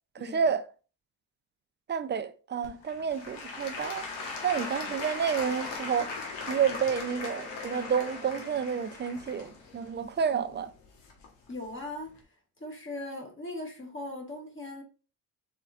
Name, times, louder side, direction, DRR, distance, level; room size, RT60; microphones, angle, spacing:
voice 1, 0.1-0.7 1.9-4.1 4.4-6.1 6.5-10.7, right 7 dB, 25° right, 0.4 m, -30 dB
Applause / Crowd, 2.6-11.5 12.1-12.2, left 4 dB, 85° left, 1.3 m, -39 dB
voice 2, 11.5-12.1 12.6-14.8, left 1 dB, 30° left, 1.6 m, -39 dB
4.2 x 3.9 x 2.4 m
cardioid pair, 80°, 42 cm